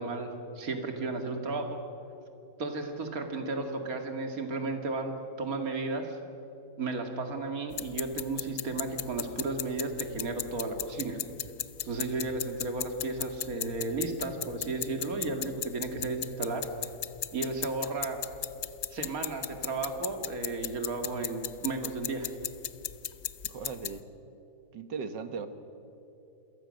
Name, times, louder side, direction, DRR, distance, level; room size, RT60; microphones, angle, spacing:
voice 1, 0.0-1.8 2.6-6.2 6.8-11.2 11.8-16.7 17.3-18.2 18.9-22.3, right 3 dB, 50° right, 5 dB, 2.7 m, -34 dB
sound 1, 7.7-24.0, left 10 dB, 75° left, 0.6 m, -38 dB
voice 2, 23.4-24.0 24.7-25.5, right 5 dB, 70° right, 9 dB, 2.1 m, -38 dB
28.5 x 22.5 x 6.5 m, 3.0 s
omnidirectional pair, 2.0 m